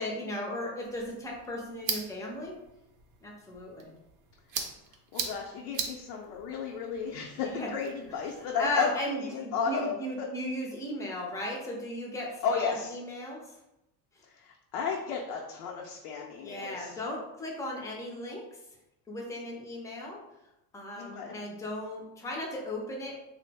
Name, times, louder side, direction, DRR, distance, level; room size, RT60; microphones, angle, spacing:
voice 1, 0.0-2.5 3.2-3.9 7.4-7.7 8.6-13.5 16.4-18.6 19.1-20.2 20.7-23.1, left 1 dB, 10° left, -2 dB, 0.3 m, -36 dB
sound 1, 0.8-8.7, right 6 dB, 45° right, 0.5 m, -41 dB
voice 2, 5.1-10.3 12.4-12.9 14.3-17.0 21.0-21.4, left 6 dB, 85° left, -1 dB, 0.6 m, -33 dB
3.1 x 2.0 x 3.3 m, 0.89 s
cardioid pair, 140°, 44 cm